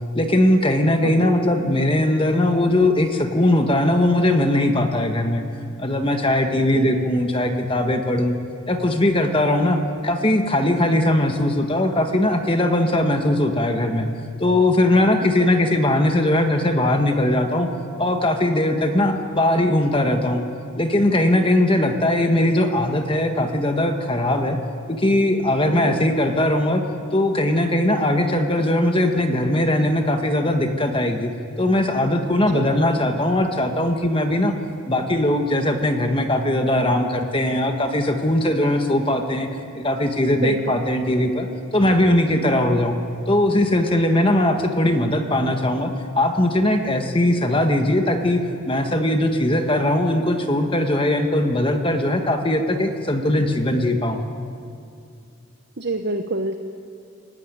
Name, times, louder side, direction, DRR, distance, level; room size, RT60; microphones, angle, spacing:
voice 1, 0.1-5.4 5.8-8.4 8.7-14.1 14.4-17.7 18.0-20.4 20.8-24.6 24.9-26.8 27.1-31.3 31.6-34.5 34.9-39.5 39.7-41.5 41.7-43.0 43.3-54.2, left 1 dB, 25° left, 5 dB, 1.5 m, -20 dB
voice 2, 40.4-40.8 55.8-56.6, right 2 dB, 50° right, 5 dB, 1.0 m, -26 dB
26.5 x 15.5 x 9.8 m, 2.5 s
head